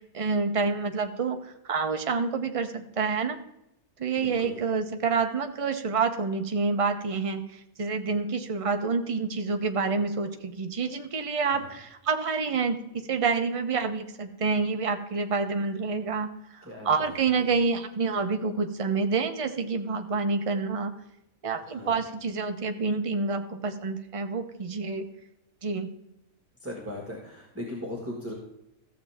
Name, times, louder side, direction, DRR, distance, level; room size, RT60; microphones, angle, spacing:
voice 1, 0.1-1.4 1.6-3.4 4.0-20.9 21.4-25.0 25.6-25.9, right 4 dB, 30° right, 6 dB, 0.7 m, -28 dB
voice 2, 4.1-4.6 11.4-11.7 16.6-17.6 21.6-22.0 26.6-28.3, left 1 dB, 10° right, -1 dB, 1.8 m, -39 dB
14.0 x 7.4 x 3.5 m, 0.87 s
omnidirectional pair, 1.5 m